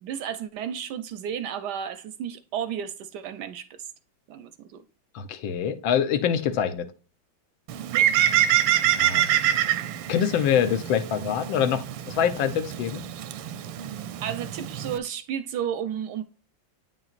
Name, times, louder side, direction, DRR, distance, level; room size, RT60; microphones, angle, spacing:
voice 1, 0.0-3.9 4.3-4.8 7.9-8.1 14.2-16.2, right 9 dB, 75° right, 1.0 m, -33 dB
voice 2, 5.1-6.9 8.9-9.3 10.1-13.0, left 8 dB, 85° left, 1.5 m, -25 dB
Bird, 7.7-15.0, right 11 dB, 90° right, 1.4 m, -26 dB
8.9 x 6.0 x 2.4 m
omnidirectional pair, 2.1 m